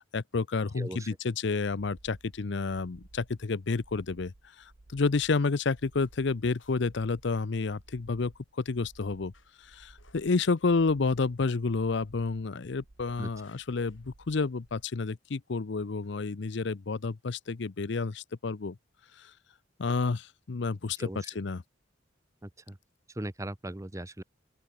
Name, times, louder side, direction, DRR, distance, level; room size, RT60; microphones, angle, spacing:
voice 1, 0.0-4.3 4.6-9.3 9.6-18.8 19.2-19.3 19.8-21.1 21.3-21.6, left 4 dB, 65° left, 0.6 m, -30 dB
voice 2, 0.8-1.1 13.2-13.3 21.0-21.3 22.4-22.8 23.1-24.2, right 1 dB, 15° right, 1.0 m, -39 dB
sound 1, 1.6-14.9, right 2 dB, 85° right, 1.4 m, -57 dB
sound 2, 5.6-17.3, left 6 dB, 80° left, 7.8 m, -72 dB
open air
head